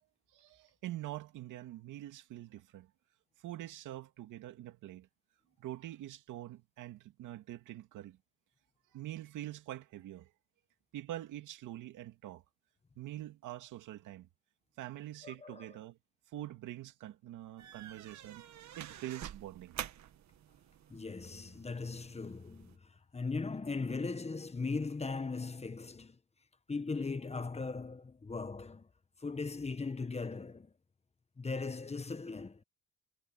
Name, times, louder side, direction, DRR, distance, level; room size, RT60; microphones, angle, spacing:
voice 1, 0.3-2.9 3.4-5.1 5.6-8.2 8.9-10.3 10.9-12.4 13.0-14.3 14.8-16.0 16.3-18.5 18.8-19.8, right 14 dB, 90° right, 2.5 m, -45 dB
voice 2, 15.2-15.7 20.9-26.2 26.7-28.9 29.2-30.7 31.4-32.6, left 4 dB, 20° left, 1.3 m, -39 dB
sound 1, 17.6-22.8, right 10 dB, 65° right, 1.6 m, -48 dB
cardioid pair, 90°, 30 cm